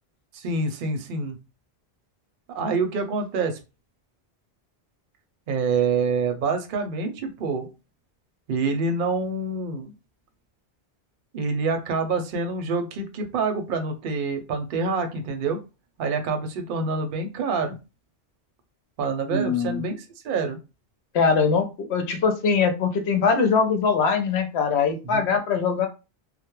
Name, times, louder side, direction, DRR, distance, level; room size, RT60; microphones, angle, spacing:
voice 1, 0.3-1.4 2.5-3.6 5.5-7.7 8.5-9.9 11.3-15.6 16.0-17.8 19.0-20.6 25.0-25.2, right 4 dB, 60° right, 6 dB, 0.7 m, -26 dB
voice 2, 19.3-19.8 21.1-21.6 21.9-25.9, left 5 dB, 80° left, 5 dB, 0.9 m, -22 dB
2.2 x 2.1 x 3.0 m, 0.29 s
omnidirectional pair, 1.1 m